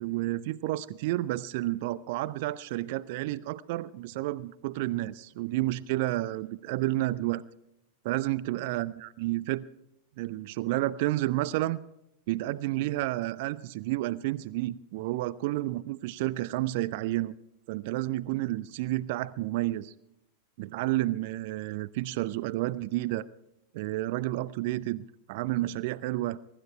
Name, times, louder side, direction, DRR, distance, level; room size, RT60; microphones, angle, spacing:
voice 1, 0.0-7.4 8.0-9.6 10.2-11.8 12.3-17.3 17.7-19.9 20.6-23.3 23.7-26.4, right 16 dB, 50° right, 18 dB, 0.5 m, -30 dB
23.5 x 12.0 x 4.4 m, 0.82 s
figure-of-eight pair, 90°, 0 cm